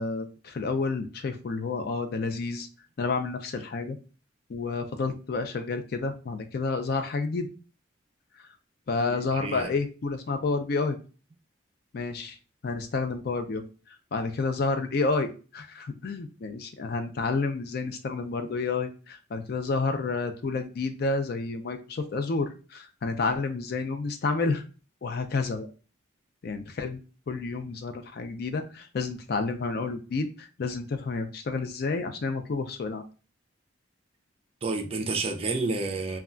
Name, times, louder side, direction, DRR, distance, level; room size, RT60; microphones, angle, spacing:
voice 1, 0.0-2.7 3.0-4.0 4.5-7.5 8.9-11.0 11.9-12.4 12.6-13.6 14.1-24.6 25.0-25.7 26.4-27.0 27.3-33.0, left 3 dB, 50° left, 0.4 m, -30 dB
voice 2, 9.1-9.7 34.6-36.2, right 3 dB, 30° right, 0.3 m, -30 dB
2.3 x 2.2 x 3.6 m
head